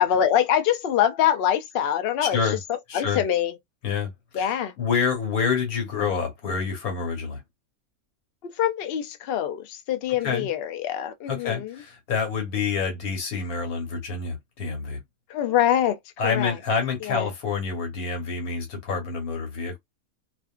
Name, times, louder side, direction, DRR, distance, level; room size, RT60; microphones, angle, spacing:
voice 1, 0.0-2.4 2.9-3.5 4.3-4.7 8.6-11.7 15.3-16.5 17.0-17.3, left 10 dB, 65° left, 0.6 m, -24 dB
voice 2, 2.9-3.2 3.8-7.4 10.2-10.5 11.3-15.0 16.2-19.8, left 5 dB, 85° left, 1.5 m, -27 dB
2.6 x 2.5 x 2.3 m
omnidirectional pair, 1.5 m